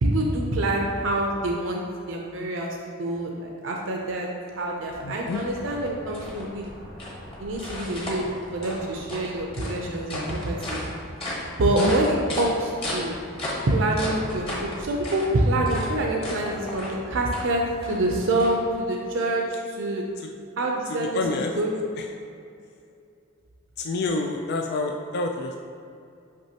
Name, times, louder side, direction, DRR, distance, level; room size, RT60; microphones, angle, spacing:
voice 1, 0.0-4.3 4.6-6.7 7.4-10.8 11.4-13.2 13.7-20.0 20.6-21.7, right 1 dB, 70° right, -1 dB, 0.6 m, -26 dB
sound 1, 4.6-19.1, left 1 dB, 30° left, 1.2 m, -35 dB
voice 2, 5.0-5.4 11.8-11.9 20.2-20.3 20.9-21.5 22.0-22.1 23.8-25.6, left 3 dB, 55° left, 3 dB, 0.3 m, -28 dB
6.0 x 5.4 x 2.9 m, 2.5 s
head